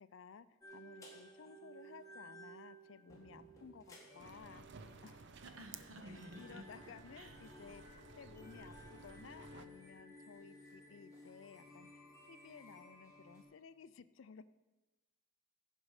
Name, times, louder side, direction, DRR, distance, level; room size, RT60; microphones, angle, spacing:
voice 1, 0.0-5.3 6.0-14.4, left 6 dB, 65° left, 15 dB, 0.4 m, -57 dB
sound 1, 0.6-13.4, equal, 15° left, 1.7 m, -57 dB
sound 2, 4.2-9.7, right 4 dB, 55° right, 0.5 m, -56 dB
voice 2, 5.4-6.6 7.2-7.3, right 1 dB, 80° right, 5 dB, 1.3 m, -53 dB
15.0 x 5.3 x 4.8 m, 1.1 s
head